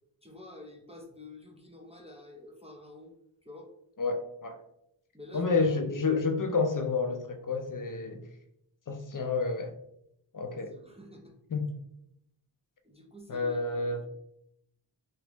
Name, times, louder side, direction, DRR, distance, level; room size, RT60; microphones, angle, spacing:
voice 1, 0.2-3.1 3.4-3.7 5.1-5.7 10.5-11.3 12.8-14.1, left 2 dB, 15° right, -1 dB, 0.5 m, -49 dB
voice 2, 4.0-4.6 5.3-8.2 8.9-9.7 10.3-10.7 11.5-11.7 13.3-14.0, left 4 dB, 40° left, 6 dB, 0.5 m, -29 dB
3.3 x 2.4 x 3.0 m, 0.77 s
wide cardioid pair, 40°, 49 cm